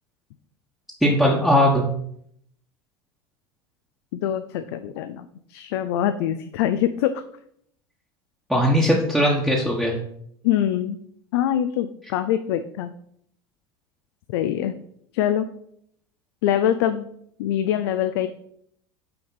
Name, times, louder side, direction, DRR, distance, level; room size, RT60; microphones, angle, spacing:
voice 1, 1.0-1.9 8.5-10.0, equal, ahead, -3 dB, 1.2 m, -19 dB
voice 2, 4.1-7.2 10.4-11.0 11.3-12.9 14.3-14.7 15.1-15.5 16.4-17.1 17.4-18.3, left 10 dB, 75° left, 10 dB, 0.4 m, -24 dB
5.7 x 3.5 x 5.6 m, 0.69 s
hypercardioid pair, 95°, 13 cm